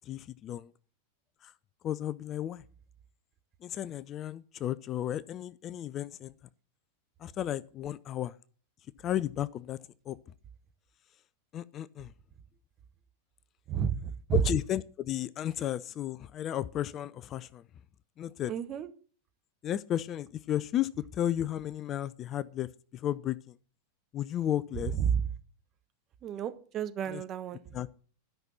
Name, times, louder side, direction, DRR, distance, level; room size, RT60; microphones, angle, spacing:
voice 1, 0.1-0.7 1.4-1.5 1.8-2.6 3.6-6.3 7.2-8.3 9.0-9.8 10.1-10.2 11.5-12.1 14.3-17.6 18.2-18.5 19.6-23.5 24.1-24.9 27.1-27.2 27.7-27.9, left 11 dB, 30° left, 0.4 m, -33 dB
voice 2, 13.7-14.4 18.5-18.9 24.9-25.3 26.2-27.6, right 8 dB, 30° right, 1.2 m, -31 dB
12.0 x 5.9 x 7.1 m
figure-of-eight pair, 90°, 0 cm